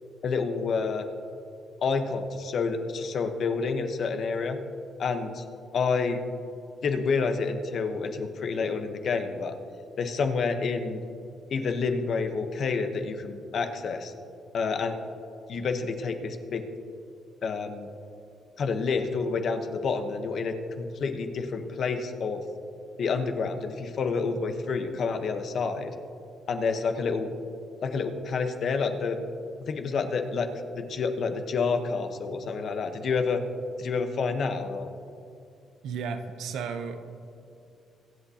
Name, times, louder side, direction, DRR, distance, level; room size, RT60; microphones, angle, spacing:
voice 1, 0.2-1.0 1.8-4.6 5.0-5.4 5.7-6.2 6.8-9.5 10.0-11.0 11.5-14.1 14.5-14.9 15.5-16.6 17.4-17.9 18.6-22.4 23.0-25.9 26.5-27.3 27.8-29.2 29.6-30.5 30.7-33.4 33.8-34.9, left 4 dB, 60° left, 6 dB, 1.0 m, -28 dB
voice 2, 35.8-37.1, right 5 dB, 80° right, 8 dB, 0.8 m, -34 dB
23.5 x 8.1 x 2.8 m, 2.5 s
cardioid pair, 90°, 0 cm